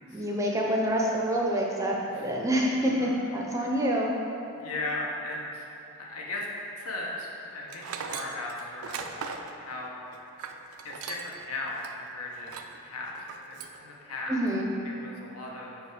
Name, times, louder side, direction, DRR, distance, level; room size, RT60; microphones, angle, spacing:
voice 1, 0.1-4.1 14.3-14.7, equal, 15° right, -2 dB, 0.5 m, -27 dB
voice 2, 4.5-5.6 6.0-6.5 6.8-10.2 10.8-12.6 12.8-14.4 14.8-15.8, left 2 dB, 80° left, -2 dB, 0.9 m, -37 dB
Tools, 7.7-11.4 11.8-11.9 12.4-12.8 13.1-13.8, right 6 dB, 80° right, 0.4 m, -39 dB
5.0 x 4.7 x 4.8 m, 2.8 s
head